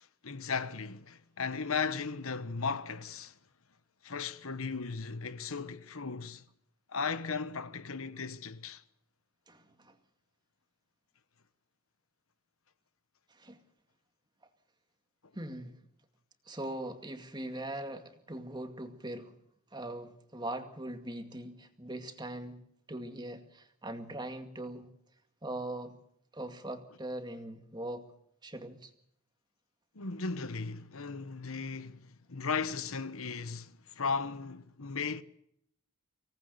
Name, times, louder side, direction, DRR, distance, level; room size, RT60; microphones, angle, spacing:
voice 1, 0.0-3.3 4.0-6.4 6.9-8.8 29.9-35.2, left 5 dB, 70° left, 1.2 m, -36 dB
voice 2, 9.5-10.0 13.3-13.6 15.3-15.8 16.5-19.3 19.7-24.9 25.4-26.0 26.3-28.1 28.4-28.9, right 1 dB, 20° right, 2.2 m, -41 dB
25.5 x 18.5 x 6.7 m
head